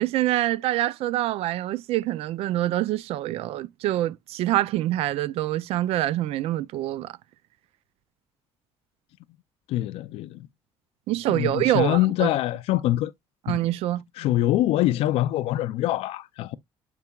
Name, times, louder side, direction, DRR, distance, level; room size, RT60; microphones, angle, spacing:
voice 1, 0.0-7.1 11.1-12.3 13.5-14.0, right 14 dB, 90° right, 0.5 m, -25 dB
voice 2, 9.7-10.4 11.3-13.1 13.5-13.6 14.2-16.6, left 15 dB, 85° left, 0.4 m, -24 dB
9.7 x 4.6 x 2.4 m
cardioid pair, 145°, 10 cm